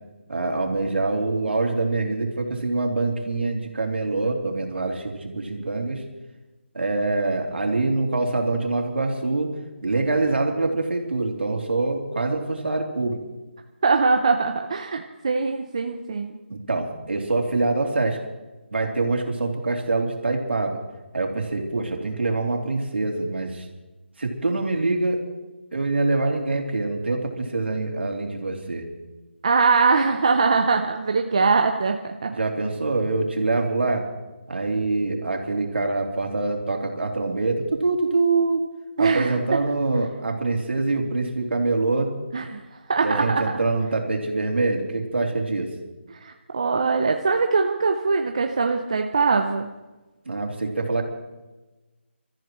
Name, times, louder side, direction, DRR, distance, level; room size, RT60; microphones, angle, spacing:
voice 1, 0.3-6.0 6.7-9.5 9.8-13.2 16.5-18.2 18.7-20.8 21.1-23.7 24.2-25.2 25.7-28.8 32.3-34.1 34.5-38.6 39.0-42.1 43.0-45.7 50.3-51.0, right 3 dB, 65° right, 1 dB, 3.1 m, -25 dB
voice 2, 13.8-16.4 29.4-32.3 39.0-39.4 42.3-42.6 42.9-43.6 46.1-49.7, right 4 dB, 30° right, 4 dB, 0.6 m, -22 dB
28.0 x 14.0 x 3.1 m, 1.1 s
figure-of-eight pair, 175°, 7 cm